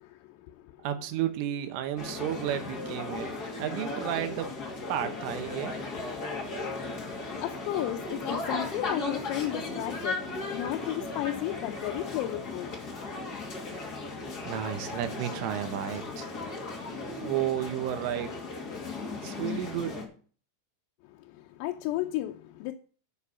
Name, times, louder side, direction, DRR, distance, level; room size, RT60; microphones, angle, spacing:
voice 1, 0.0-0.9 3.5-3.6 5.8-12.8 21.0-22.7, left 14 dB, 85° left, 3.4 m, -35 dB
voice 2, 0.8-3.3 3.6-4.6 4.9-5.9 14.5-16.3 17.2-18.3 19.2-20.1, right 11 dB, 75° right, 3.6 m, -32 dB
sound 1, 2.0-20.0, left 3 dB, 35° left, 1.6 m, -36 dB
12.0 x 6.8 x 5.6 m
omnidirectional pair, 5.9 m